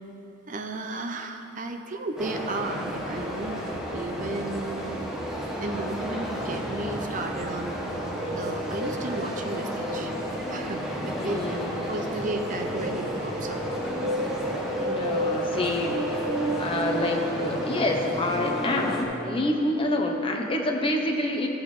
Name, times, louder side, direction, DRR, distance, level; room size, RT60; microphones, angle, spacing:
voice 1, 0.5-3.6 3.9-4.9 5.6-7.8 8.3-10.1 10.5-11.6 11.9-13.6, right 2 dB, 40° right, 5 dB, 0.5 m, -34 dB
sound 1, 2.2-19.0, right 1 dB, ahead, 0.8 m, -32 dB
sound 2, 2.9-19.8, equal, 60° right, 1.3 m, -36 dB
voice 2, 11.1-11.8 14.8-21.5, left 1 dB, 25° left, 2 dB, 0.7 m, -27 dB
13.0 x 7.2 x 3.2 m, 3.0 s
head